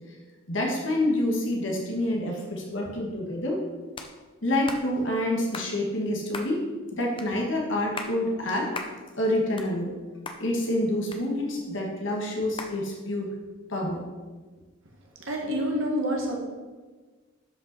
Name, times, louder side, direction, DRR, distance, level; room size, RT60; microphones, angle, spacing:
voice 1, 0.5-3.6 4.4-6.6 6.9-8.7 9.2-9.9 10.4-13.3 13.7-14.0, left 1 dB, 60° left, 0 dB, 1.6 m, -27 dB
sound 1, 4.0-4.1 4.7-4.9 5.5-5.7 6.3-6.5 7.2-7.3 7.8-8.2 8.7-9.0 9.4-10.0 10.3-10.4 11.1-11.7 12.6-12.8, left 3 dB, 25° left, 0.7 m, -37 dB
voice 2, 15.3-16.4, equal, 70° right, -1 dB, 1.7 m, -27 dB
12.0 x 5.5 x 4.1 m, 1.3 s
head